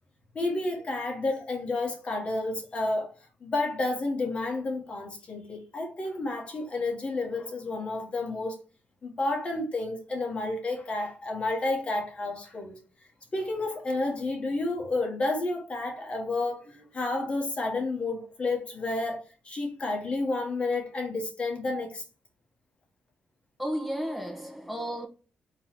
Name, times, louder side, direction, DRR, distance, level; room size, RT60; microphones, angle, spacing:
voice 1, 0.3-3.1 3.4-8.6 9.0-12.8 13.3-22.0, left 2 dB, 35° left, 1.4 m, -30 dB
voice 2, 23.6-25.1, equal, ahead, 1.2 m, -33 dB
3.9 x 3.1 x 4.1 m
cardioid pair, 110°, 3 cm